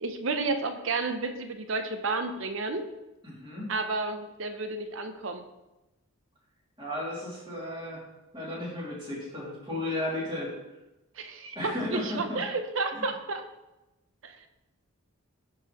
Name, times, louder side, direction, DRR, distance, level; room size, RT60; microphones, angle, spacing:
voice 1, 0.0-2.9 3.7-5.4 11.2-13.4 14.2-14.5, right 3 dB, 60° right, 7 dB, 0.7 m, -31 dB
voice 2, 3.2-3.7 6.8-8.0 8.3-10.5 11.5-12.4 12.9-13.1, left 1 dB, 20° right, -6 dB, 2.5 m, -34 dB
11.5 x 4.8 x 3.0 m, 0.99 s
head